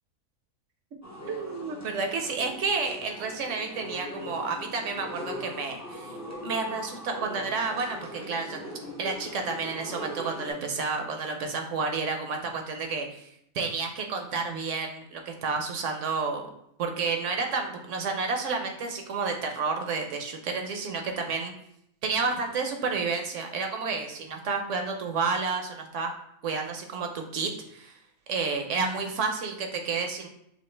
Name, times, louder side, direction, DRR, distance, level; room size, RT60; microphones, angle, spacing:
sound 1, 1.0-10.5, equal, 25° left, 0.3 m, -40 dB
voice 1, 1.3-6.2 6.4-8.6 9.0-13.3 13.5-16.5 16.8-21.5 22.0-26.1 26.4-28.0 28.3-30.3, right 4 dB, 65° right, 4 dB, 0.8 m, -30 dB
6.2 x 2.4 x 3.2 m, 0.75 s
omnidirectional pair, 1.6 m